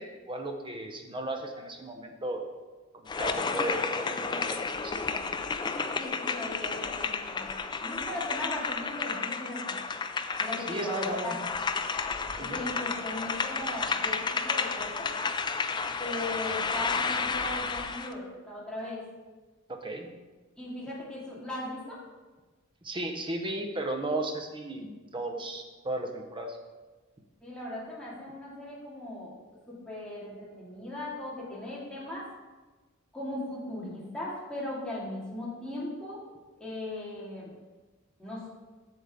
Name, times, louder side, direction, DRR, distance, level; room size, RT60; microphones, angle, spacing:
voice 1, 0.0-2.4 2.9-5.2 10.7-11.4 12.4-12.6 19.7-20.1 22.8-26.6, right 1 dB, 25° right, 4 dB, 0.8 m, -35 dB
sound 1, 3.1-18.1, left 4 dB, 20° left, 0.3 m, -32 dB
voice 2, 5.9-9.7 10.4-11.4 12.3-15.1 16.0-19.0 20.6-22.0 27.4-29.3 29.7-32.3 33.1-36.2 36.6-37.5 38.2-38.5, left 1 dB, 5° left, -7 dB, 2.2 m, -38 dB
7.4 x 7.2 x 3.6 m, 1.3 s
head